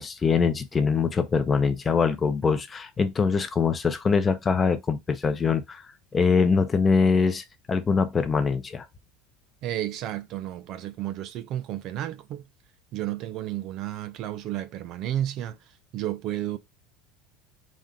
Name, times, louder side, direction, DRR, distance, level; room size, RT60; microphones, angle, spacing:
voice 1, 0.0-5.8 6.1-8.8, left 5 dB, 20° left, 0.6 m, -23 dB
voice 2, 9.6-12.4 12.9-15.6 15.9-16.6, right 12 dB, 50° right, 0.4 m, -32 dB
4.2 x 2.5 x 3.6 m
supercardioid pair, 145°, 0 cm